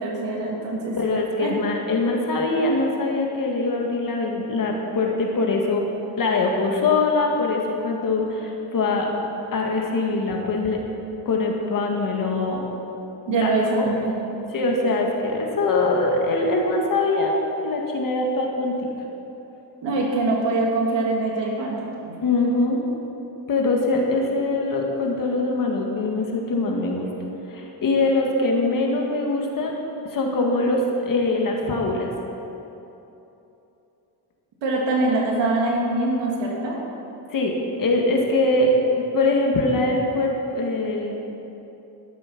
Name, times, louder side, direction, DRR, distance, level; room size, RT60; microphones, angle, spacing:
voice 1, 0.0-0.9 1.4-1.5 13.3-14.1 19.8-21.8 22.1-22.2 34.6-36.8, right 2 dB, 90° right, -2 dB, 3.0 m, -23 dB
voice 2, 0.9-5.8 6.2-9.1 9.5-10.8 11.3-12.6 13.3-13.9 14.5-17.4 17.6-18.8 22.2-22.8 23.5-27.1 27.5-29.7 30.1-32.1 37.3-41.1, left 2 dB, 50° left, 0 dB, 1.9 m, -23 dB
13.0 x 12.0 x 6.0 m, 3.0 s
cardioid pair, 135°, 42 cm